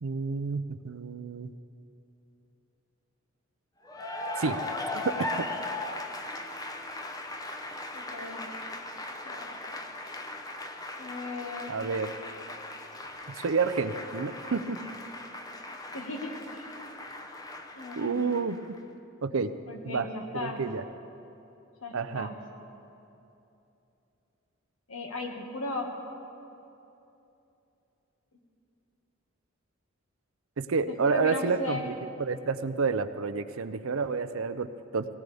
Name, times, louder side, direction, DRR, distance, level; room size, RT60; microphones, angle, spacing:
voice 1, 0.0-1.5 4.4-4.6 4.9-5.5 11.7-12.1 13.3-14.8 18.0-18.6 19.2-19.5 19.8-20.1 20.3-20.8 21.9-22.3 30.6-35.1, right 4 dB, 75° right, 12 dB, 0.6 m, -29 dB
Cheering / Applause, 3.8-18.8, left 2 dB, 15° left, 0.7 m, -38 dB
voice 2, 7.9-8.4 9.2-9.6 11.0-11.8 15.9-16.7 17.7-18.2 19.6-20.6 21.8-22.4 24.9-25.9 30.9-31.9, left 2 dB, 80° left, 1 dB, 1.8 m, -37 dB
18.0 x 18.0 x 3.5 m, 2.9 s
head